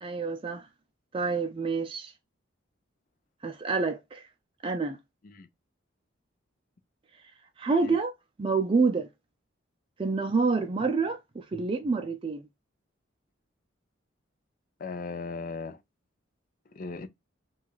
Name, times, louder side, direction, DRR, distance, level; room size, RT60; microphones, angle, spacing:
voice 1, 0.0-0.7 1.1-2.1 3.4-4.3 4.6-5.0 7.6-8.1 8.4-9.1 10.0-12.5, right 4 dB, 30° right, 0.4 m, -27 dB
voice 2, 14.8-15.8 16.7-17.1, left 3 dB, 45° left, 0.5 m, -37 dB
4.6 x 2.3 x 2.3 m
head